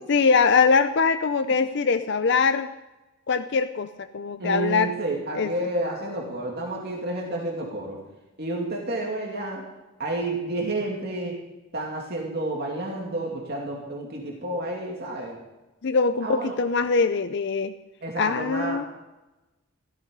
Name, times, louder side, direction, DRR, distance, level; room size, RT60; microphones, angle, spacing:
voice 1, 0.1-2.7 3.3-3.9 4.1-4.9 5.3-5.5 15.8-17.7 18.2-18.8, left 5 dB, 55° left, 10 dB, 0.5 m, -22 dB
voice 2, 4.4-8.0 8.4-9.6 10.0-11.3 11.7-15.4 16.2-16.5 18.0-18.8, right 2 dB, 50° right, -1 dB, 2.7 m, -30 dB
15.5 x 13.5 x 5.4 m, 1.0 s
head